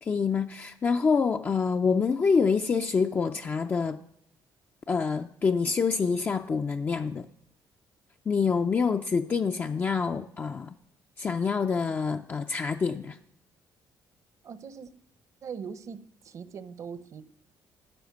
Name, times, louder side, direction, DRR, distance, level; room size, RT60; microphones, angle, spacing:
voice 1, 0.0-4.0 4.9-7.3 8.3-10.7 11.2-13.2, left 5 dB, 30° left, 0.4 m, -26 dB
voice 2, 14.4-14.9 15.4-17.2, right 6 dB, 50° right, 0.8 m, -41 dB
12.0 x 6.3 x 9.2 m
cardioid pair, 125°, 7 cm